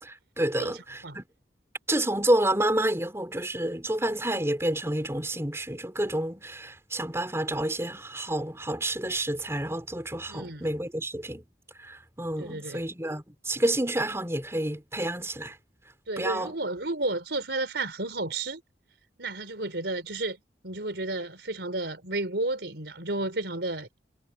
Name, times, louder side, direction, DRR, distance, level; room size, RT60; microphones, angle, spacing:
voice 1, 0.0-1.2 1.9-11.4 11.8-15.6 16.2-16.5, right 1 dB, 15° right, 3.8 m, -29 dB
voice 2, 0.6-1.2 10.3-10.7 12.4-12.8 16.1-18.6 19.2-20.4 20.6-23.9, right 2 dB, 75° right, 4.3 m, -32 dB
head